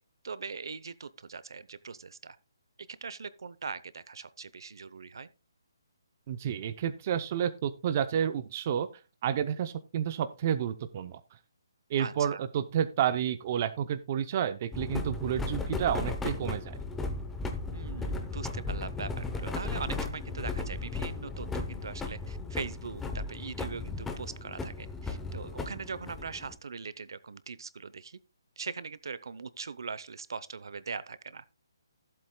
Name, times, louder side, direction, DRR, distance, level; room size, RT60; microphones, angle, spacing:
voice 1, 0.2-2.4 2.8-5.3 12.0-12.4 17.7-28.2 28.6-31.6, right 5 dB, 65° right, 0.7 m, -41 dB
voice 2, 6.3-8.9 9.2-11.2 11.9-16.8, right 9 dB, 30° right, 0.6 m, -30 dB
sound 1, 14.7-26.6, left 3 dB, 5° left, 0.7 m, -36 dB
15.0 x 7.8 x 2.2 m
hypercardioid pair, 165°, 2 cm